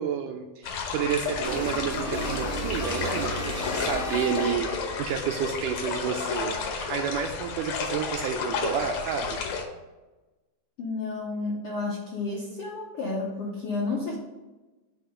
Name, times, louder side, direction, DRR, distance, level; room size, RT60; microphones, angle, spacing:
voice 1, 0.0-4.7 5.0-9.4, right 8 dB, 80° right, 3 dB, 1.9 m, -30 dB
sound 1, 0.6-9.6, left 5 dB, 70° left, 1.7 m, -32 dB
sound 2, 1.4-4.8, equal, 30° right, 0.6 m, -33 dB
Wind instrument woodwind instrument, 3.3-6.1, left 3 dB, 45° left, 0.8 m, -47 dB
voice 2, 10.8-14.2, left 3 dB, 85° left, -3 dB, 1.2 m, -31 dB
7.9 x 2.9 x 5.6 m, 1.1 s
omnidirectional pair, 3.9 m